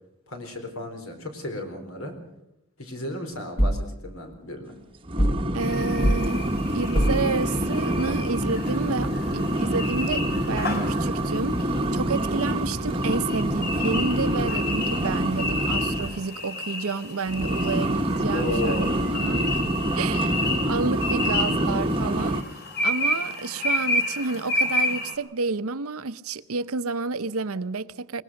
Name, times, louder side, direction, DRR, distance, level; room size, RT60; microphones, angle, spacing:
voice 1, 0.3-2.1 2.8-4.8 18.3-19.1, left 1 dB, 75° left, 4.3 m, -34 dB
sound 1, 3.6-3.9 5.2-5.5 6.0-6.3 6.9-7.3, equal, 25° left, 1.3 m, -22 dB
sound 2, 5.1-16.2 17.3-22.4, right 1 dB, 25° right, 1.0 m, -26 dB
voice 2, 5.5-6.5 6.7-19.6 19.9-22.4 22.8-28.2, right 4 dB, 80° right, 0.8 m, -30 dB
sound 3, 5.6-25.1, left 2 dB, 45° left, 3.3 m, -31 dB
22.0 x 20.0 x 6.5 m
head